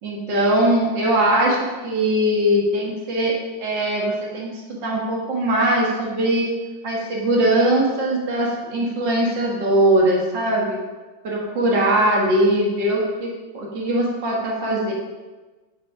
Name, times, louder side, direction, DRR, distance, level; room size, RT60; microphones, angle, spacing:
voice 1, 0.0-3.3 3.6-6.5 6.8-10.8 11.2-14.9, right 1 dB, 70° right, -2 dB, 2.3 m, -21 dB
9.3 x 7.2 x 5.0 m, 1.3 s
omnidirectional pair, 2.0 m